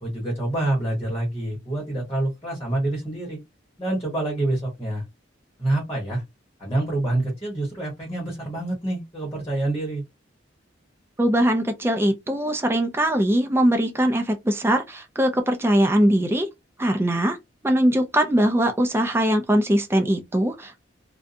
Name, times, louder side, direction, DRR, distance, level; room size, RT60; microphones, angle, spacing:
voice 1, 0.0-3.4 3.8-5.0 5.6-6.2 6.6-10.0, right 1 dB, 15° left, 1.1 m, -27 dB
voice 2, 11.2-16.5 16.8-17.4 17.6-20.8, right 1 dB, 10° right, 0.4 m, -21 dB
2.6 x 2.3 x 2.5 m
head